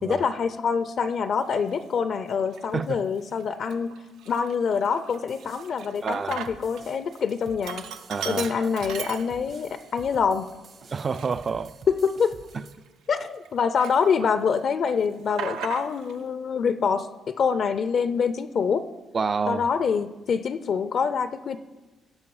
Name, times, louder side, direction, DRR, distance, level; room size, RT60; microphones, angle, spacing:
voice 1, 0.0-3.9 4.3-7.9 8.2-10.5 11.9-12.4 13.1-18.9 19.5-21.6, left 6 dB, 60° left, 0.4 m, -25 dB
Sink (filling or washing), 1.6-1.7 2.4-2.9 3.3-3.4 3.7-6.8 7.1-9.7 10.1-10.2 10.9-13.5 13.8-14.6 14.8-16.2, right 7 dB, 85° right, 0.6 m, -38 dB
sound 1, 5.1-12.7, right 5 dB, 60° right, 1.3 m, -50 dB
voice 2, 6.0-6.3 8.1-8.7 10.9-11.7 12.5-12.6 19.1-19.7, right 5 dB, 35° right, 0.4 m, -28 dB
17.0 x 5.7 x 4.7 m
cardioid pair, 90°, 0 cm